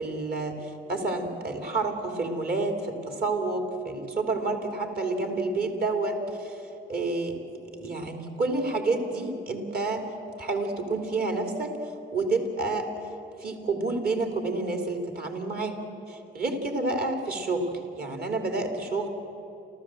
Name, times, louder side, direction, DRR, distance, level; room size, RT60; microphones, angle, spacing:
voice 1, 0.0-6.6 6.9-10.0 10.4-12.9 13.4-15.8 16.1-19.1, right 3 dB, 50° right, 4 dB, 3.2 m, -29 dB
29.0 x 14.0 x 7.8 m, 2.9 s
cardioid pair, 90°, 20 cm